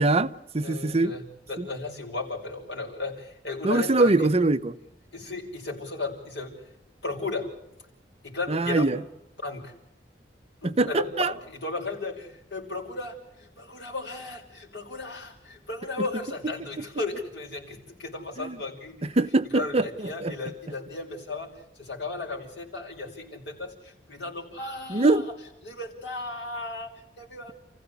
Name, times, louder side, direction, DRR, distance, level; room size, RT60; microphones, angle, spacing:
voice 1, 0.0-1.1 1.6-1.7 3.6-4.8 8.5-9.0 10.6-11.3 18.4-18.6 19.2-20.3 24.9-25.3, right 2 dB, 35° right, 12 dB, 0.8 m, -23 dB
voice 2, 0.6-4.3 5.1-6.5 7.0-7.5 8.2-8.9 9.4-9.7 10.6-19.0 19.5-25.2 25.7-27.5, left 3 dB, 75° left, 1 dB, 5.8 m, -35 dB
29.5 x 15.5 x 8.3 m, 0.86 s
head